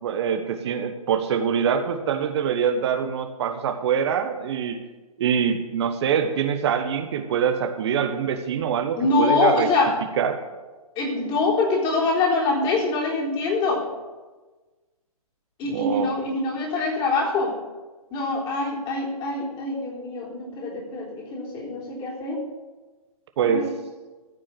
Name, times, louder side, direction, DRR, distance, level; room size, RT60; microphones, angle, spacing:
voice 1, 0.0-4.8 5.2-9.7 10.2-10.4 15.7-16.1 23.4-23.7, right 7 dB, 45° right, 7 dB, 1.2 m, -24 dB
voice 2, 9.0-10.0 11.0-13.9 15.6-17.6 18.1-22.4 23.4-23.7, left 3 dB, 25° left, -2 dB, 3.8 m, -24 dB
14.5 x 6.3 x 7.7 m, 1.2 s
hypercardioid pair, 145°, 19 cm